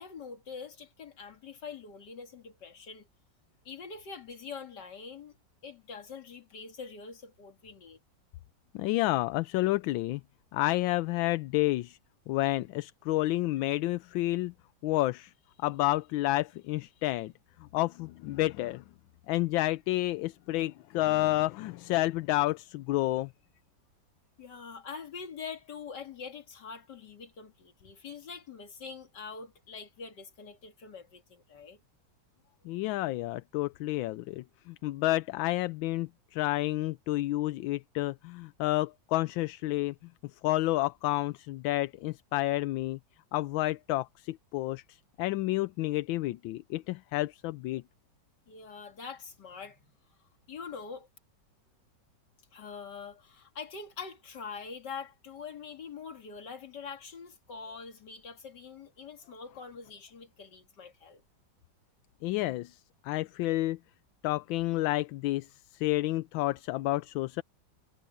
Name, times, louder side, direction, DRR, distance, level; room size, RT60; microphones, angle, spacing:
voice 1, 0.0-3.1 3.6-5.4 5.6-8.0 24.4-31.8 48.5-49.9 50.5-51.1 52.5-61.2, left 5 dB, 60° left, 2.7 m, -44 dB
voice 2, 8.7-10.2 10.5-12.0 12.3-14.5 14.8-15.3 15.6-17.3 17.7-18.8 19.3-23.3 32.6-39.9 40.4-43.0 43.3-47.8 62.2-63.8 64.2-67.4, left 17 dB, 85° left, 1.3 m, -30 dB
omnidirectional pair, 2.1 m